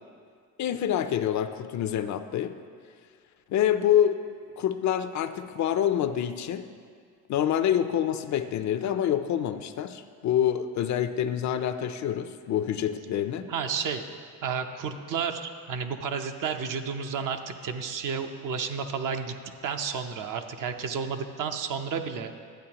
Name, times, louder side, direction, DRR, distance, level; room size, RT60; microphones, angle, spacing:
voice 1, 0.6-2.5 3.5-4.2 4.6-6.7 7.3-13.5, left 10 dB, 50° left, 10 dB, 0.5 m, -26 dB
voice 2, 13.5-14.0 14.4-19.4 19.6-22.3, right 6 dB, 55° right, 6 dB, 0.7 m, -31 dB
12.5 x 8.4 x 2.9 m, 2.1 s
cardioid pair, 100°, 37 cm